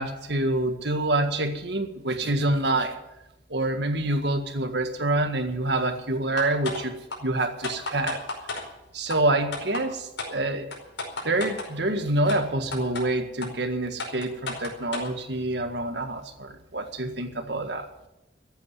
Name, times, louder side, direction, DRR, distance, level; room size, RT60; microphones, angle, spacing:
voice 1, 0.0-3.0 3.5-6.9 7.2-8.2 8.9-10.7 11.2-17.9, right 2 dB, 65° right, 7 dB, 1.7 m, -26 dB
sound 1, 6.4-6.8 7.1-7.2 7.6-8.6 9.1-9.2 9.5-9.8 10.2-10.3 10.7-11.7 12.3-12.4 12.7-13.0 13.4-13.5 14.0-15.1, left 3 dB, 80° left, 4.9 m, -32 dB
14.5 x 9.0 x 9.5 m, 0.91 s
head